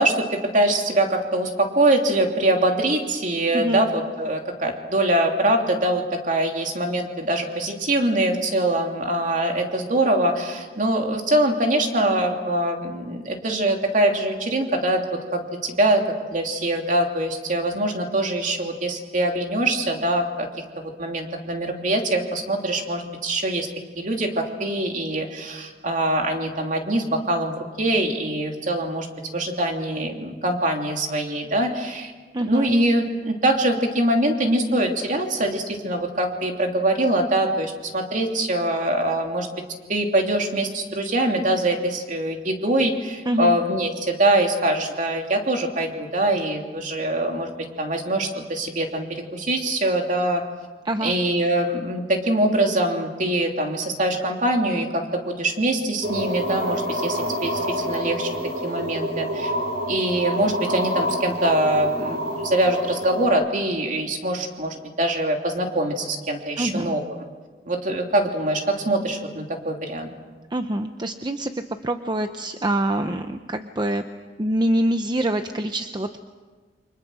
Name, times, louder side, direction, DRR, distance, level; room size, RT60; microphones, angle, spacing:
voice 1, 0.0-15.0 15.3-16.0 16.3-20.5 20.8-23.7 24.0-29.1 29.3-32.1 32.4-39.5 39.9-47.5 47.8-50.4 51.0-58.3 58.6-59.5 59.9-67.0 67.7-70.1, right 1 dB, 45° right, 2 dB, 3.0 m, -23 dB
voice 2, 3.5-3.9 32.3-32.7 43.3-43.6 50.9-51.1 66.6-66.9 70.5-71.5 71.8-74.0 74.4-76.2, right 1 dB, 25° right, 7 dB, 0.8 m, -25 dB
sound 1, 56.0-63.3, equal, 75° right, 6.0 m, -28 dB
29.5 x 25.0 x 6.3 m, 1.4 s
head